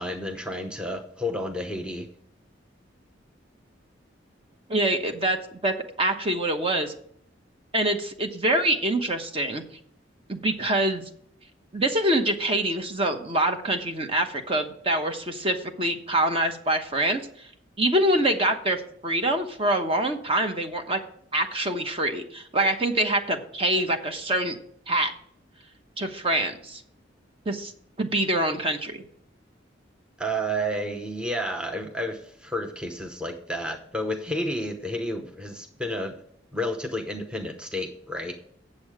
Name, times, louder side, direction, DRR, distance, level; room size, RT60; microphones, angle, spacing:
voice 1, 0.0-2.1 30.2-36.2 36.5-38.4, equal, 5° right, 4 dB, 0.8 m, -31 dB
voice 2, 4.7-6.9 7.7-9.6 10.3-11.0 11.7-17.5 17.8-18.8 19.0-21.0 21.3-24.6 24.9-25.1 26.0-26.8 27.5-27.7 28.0-29.0, right 1 dB, 30° right, 5 dB, 0.9 m, -25 dB
8.4 x 7.4 x 4.8 m, 0.66 s
head